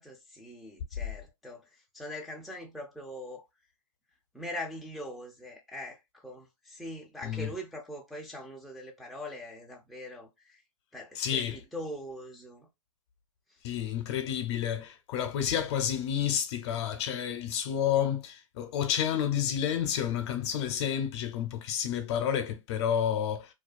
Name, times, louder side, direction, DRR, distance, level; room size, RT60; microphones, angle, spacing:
voice 1, 0.0-1.6 1.9-3.4 4.3-10.6 10.9-12.7, left 1 dB, ahead, 0.4 m, -42 dB
voice 2, 11.2-11.6 13.6-23.5, left 9 dB, 50° left, 0.6 m, -30 dB
2.3 x 2.2 x 2.4 m
hypercardioid pair, 130°, 18 cm